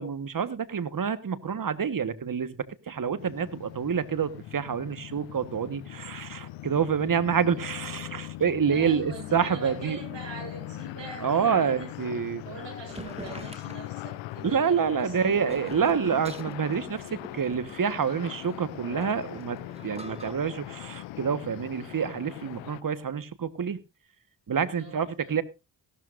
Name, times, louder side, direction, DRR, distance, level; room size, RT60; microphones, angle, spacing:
voice 1, 0.0-10.0 11.2-12.4 14.4-23.8 24.5-25.4, right 7 dB, 45° right, 15 dB, 1.4 m, -28 dB
sound 1, 3.2-22.8, left 16 dB, 90° left, 0.6 m, -41 dB
voice 2, 8.7-11.9 12.4-15.4 24.7-25.4, right 3 dB, 70° right, 3 dB, 7.8 m, -43 dB
sound 2, 12.9-20.3, right 1 dB, 15° right, 2.4 m, -45 dB
17.0 x 12.5 x 2.6 m, 0.25 s
supercardioid pair, 45°, 44 cm